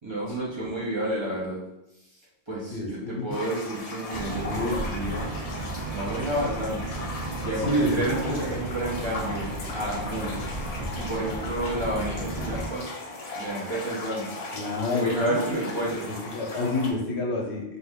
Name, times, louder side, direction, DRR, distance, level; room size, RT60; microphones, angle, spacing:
voice 1, 0.0-1.6 2.5-5.3 5.7-6.8 7.4-12.9 13.3-14.3 14.9-16.1, right 1 dB, 30° right, -8 dB, 0.7 m, -30 dB
voice 2, 2.7-3.3 4.4-4.8 7.6-8.5 14.5-15.6 16.0-17.6, left 1 dB, 75° left, 0 dB, 0.9 m, -28 dB
sound 1, 3.3-16.9, left 2 dB, 55° left, 0.4 m, -38 dB
sound 2, 4.1-12.7, right 2 dB, 65° right, 0.9 m, -34 dB
2.5 x 2.5 x 3.5 m, 0.89 s
omnidirectional pair, 1.1 m